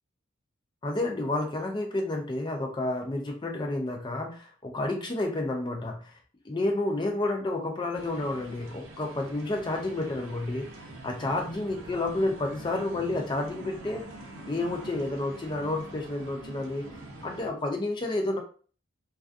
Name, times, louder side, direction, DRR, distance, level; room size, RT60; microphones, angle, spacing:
voice 1, 0.8-6.2 6.4-14.0 14.5-16.9 17.2-18.4, left 2 dB, 20° left, 2 dB, 0.4 m, -30 dB
sound 1, 7.9-17.5, right 1 dB, 65° right, 0.6 m, -45 dB
2.3 x 2.3 x 2.5 m, 0.41 s
head